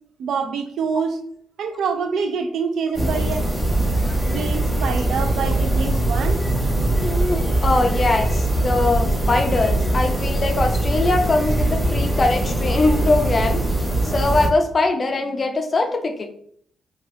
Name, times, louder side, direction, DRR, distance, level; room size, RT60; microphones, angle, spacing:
voice 1, 0.2-1.2 1.6-3.5 4.2-6.4, right 5 dB, 75° right, 0.4 m, -26 dB
sound 1, 2.9-14.5, right 1 dB, 10° right, 0.9 m, -21 dB
voice 2, 7.0-13.6 14.0-16.3, left 2 dB, 30° left, 0.4 m, -22 dB
2.7 x 2.5 x 3.2 m
wide cardioid pair, 150°, 0 cm